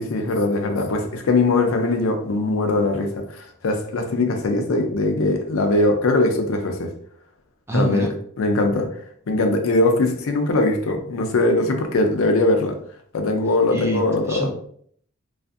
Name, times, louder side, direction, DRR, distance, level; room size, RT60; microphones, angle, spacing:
voice 1, 0.0-6.9 7.7-8.1 8.4-8.9 9.3-12.7 13.1-14.5, left 2 dB, 85° left, 0.5 m, -21 dB
voice 2, 7.7-8.1 13.7-14.5, right 1 dB, 15° right, 0.4 m, -25 dB
2.5 x 2.4 x 2.4 m
head